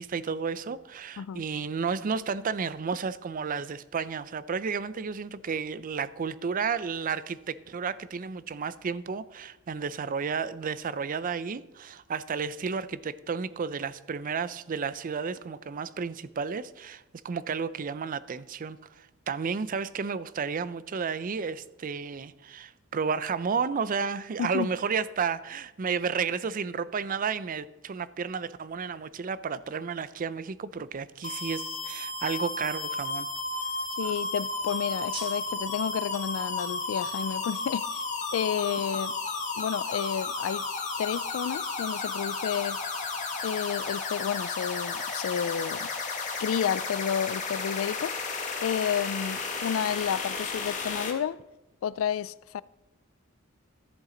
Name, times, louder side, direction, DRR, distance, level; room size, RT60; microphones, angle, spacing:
voice 1, 0.0-33.3 34.0-34.1, right 5 dB, 45° right, 0.4 m, -32 dB
sound 1, 31.2-51.1, left 3 dB, 40° left, 1.5 m, -33 dB
sound 2, 32.4-37.3, right 2 dB, 25° right, 1.9 m, -49 dB
voice 2, 34.0-38.0 38.3-39.1 39.6-40.7 41.0-42.8 43.4-45.9 46.4-48.2 48.6-51.4 51.8-52.6, left 8 dB, 85° left, 0.3 m, -31 dB
13.5 x 7.3 x 3.8 m
head